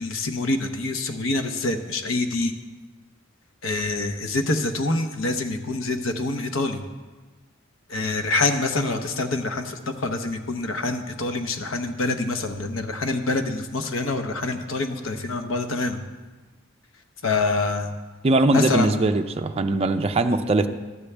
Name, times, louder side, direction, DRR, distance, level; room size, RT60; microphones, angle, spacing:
voice 1, 0.0-2.5 3.6-6.8 7.9-16.0 17.2-17.9 18.5-18.9, left 2 dB, 75° left, 7 dB, 0.8 m, -26 dB
voice 2, 18.2-20.7, right 2 dB, 30° right, 6 dB, 0.4 m, -21 dB
12.0 x 8.2 x 3.3 m, 1.2 s
head